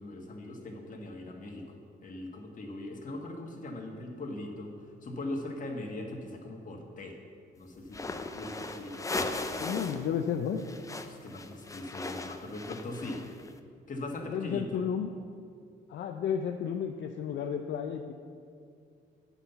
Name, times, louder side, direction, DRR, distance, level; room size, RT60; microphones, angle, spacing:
voice 1, 0.0-4.7 5.0-7.2 7.6-8.0 8.3-9.8 11.1-13.2 13.9-14.8, left 2 dB, 40° left, 1 dB, 1.7 m, -40 dB
sound 1, 7.9-10.1 10.3-13.5, left 2 dB, 15° left, 0.6 m, -37 dB
voice 2, 9.6-10.6 14.3-15.1 15.9-18.1, left 8 dB, 65° left, 4 dB, 0.5 m, -32 dB
9.0 x 5.7 x 6.9 m, 2.3 s
cardioid pair, 90°, 20 cm